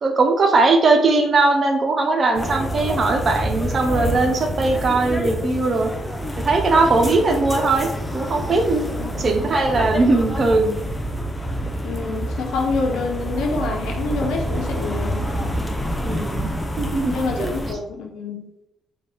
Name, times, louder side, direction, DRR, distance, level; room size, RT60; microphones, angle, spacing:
voice 1, 0.0-5.9 6.4-8.8 9.2-10.7 16.0-16.5 16.8-17.6, right 3 dB, 45° right, 4 dB, 0.8 m, -19 dB
sound 1, 2.3-17.7, equal, 10° left, 0.6 m, -27 dB
voice 2, 9.0-9.4 11.8-15.2 17.1-18.4, left 4 dB, 85° left, 1 dB, 0.9 m, -27 dB
4.0 x 2.5 x 3.5 m, 0.88 s
cardioid pair, 90°, 0 cm